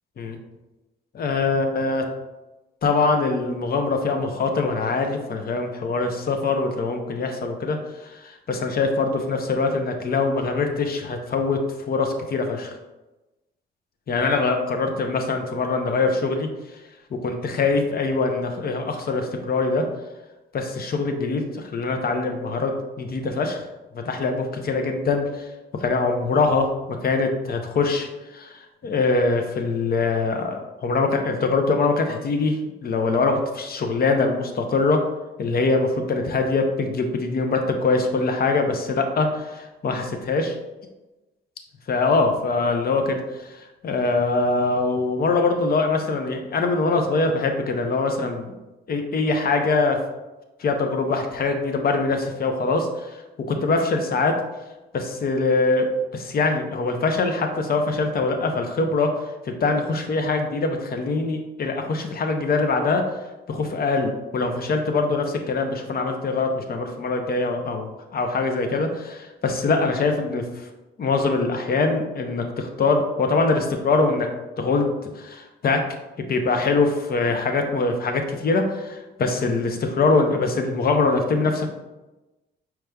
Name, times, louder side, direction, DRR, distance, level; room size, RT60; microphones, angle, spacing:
voice 1, 1.1-2.0 2.8-7.8 8.0-11.6 11.9-12.7 14.1-16.5 17.1-19.9 20.5-23.6 23.9-25.5 25.8-35.0 35.4-40.6 41.9-43.5 43.8-48.5 48.9-50.0 50.6-53.2 53.5-54.4 54.9-59.1 59.5-63.0 63.5-70.6 71.0-74.3 74.6-75.8 76.3-81.7, left 3 dB, 50° left, 4 dB, 0.8 m, -23 dB
5.0 x 4.6 x 2.3 m, 1.1 s
cardioid pair, 90°, 20 cm